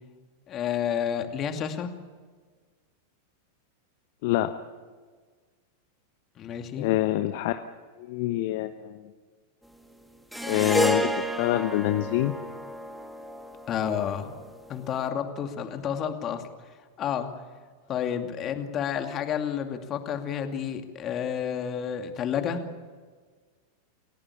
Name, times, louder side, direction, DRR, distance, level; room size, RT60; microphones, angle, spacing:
voice 1, 0.5-1.9 6.4-6.9 13.7-14.3 14.7-16.4 17.0-17.3 17.9-22.6, left 8 dB, 30° left, 6 dB, 2.5 m, -30 dB
voice 2, 6.8-7.6 8.0-9.1 10.5-12.3, left 15 dB, 50° left, 9 dB, 1.0 m, -26 dB
sound 1, 10.3-15.0, equal, ahead, 1.8 m, -31 dB
29.0 x 17.0 x 8.5 m, 1.5 s
figure-of-eight pair, 90°, 0 cm